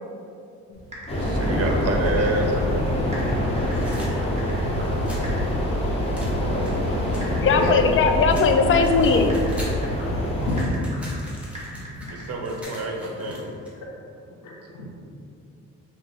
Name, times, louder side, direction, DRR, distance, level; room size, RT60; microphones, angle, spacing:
Typing, 0.7-12.6, equal, 20° right, 1.5 m, -41 dB
sound 1, 1.1-10.6, equal, 20° left, 1.1 m, -25 dB
voice 1, 1.1-2.8 12.1-13.4, right 2 dB, 50° right, 1 dB, 0.8 m, -28 dB
sound 2, 3.7-5.3 6.1-7.9 8.3-9.9 10.2-13.7, equal, 5° right, 1.1 m, -43 dB
voice 2, 7.4-9.4, left 5 dB, 45° left, 5 dB, 0.4 m, -19 dB
voice 3, 10.4-11.1 12.0-12.1 13.2-13.4 14.4-14.9, left 2 dB, 80° left, -4 dB, 0.8 m, -28 dB
5.5 x 2.3 x 3.8 m, 2.5 s
cardioid pair, 90°, 30 cm